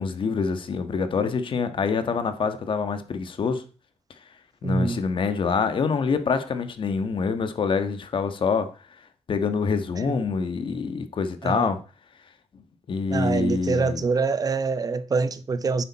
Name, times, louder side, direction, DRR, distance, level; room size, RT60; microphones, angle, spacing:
voice 1, 0.0-3.6 4.6-8.7 9.3-11.8 12.9-14.0, left 5 dB, 50° left, 1.5 m, -25 dB
voice 2, 4.6-5.0 10.1-10.2 11.4-11.7 13.1-15.8, right 4 dB, 35° right, 0.9 m, -25 dB
11.0 x 9.3 x 4.2 m
wide cardioid pair, 160°, 11 cm